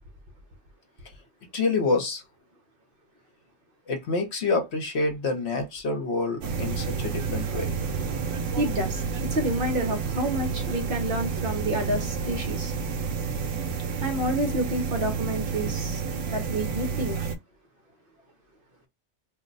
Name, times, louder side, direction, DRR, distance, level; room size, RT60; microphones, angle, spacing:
voice 1, 1.5-2.2 3.9-7.8, left 3 dB, 65° left, 1.1 m, -27 dB
sound 1, 6.4-17.3, right 5 dB, 80° right, 1.0 m, -30 dB
voice 2, 8.6-12.7 14.0-16.0 16.3-17.2, right 1 dB, 50° right, 1.0 m, -29 dB
2.6 x 2.1 x 3.8 m
omnidirectional pair, 1.3 m